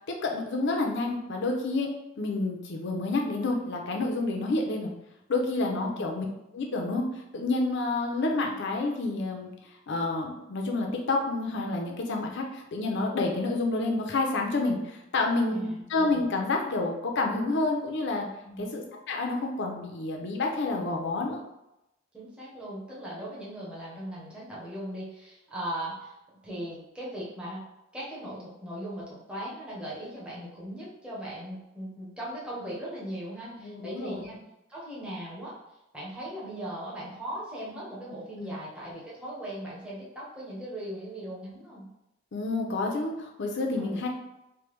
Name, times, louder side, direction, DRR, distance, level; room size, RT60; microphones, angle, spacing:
voice 1, 0.1-1.9 2.2-4.9 5.3-6.3 6.5-7.1 7.3-9.5 9.9-18.3 18.6-21.4 33.6-34.3 38.4-38.5 42.3-44.1, left 2 dB, 65° left, 1 dB, 0.6 m, -29 dB
voice 2, 5.7-6.1 15.5-15.8 18.4-18.7 22.1-26.1 26.4-27.6 27.9-34.4 34.7-35.5 35.9-41.9 43.8-44.1, right 1 dB, 5° right, -7 dB, 0.8 m, -38 dB
3.3 x 2.2 x 3.0 m, 0.90 s
head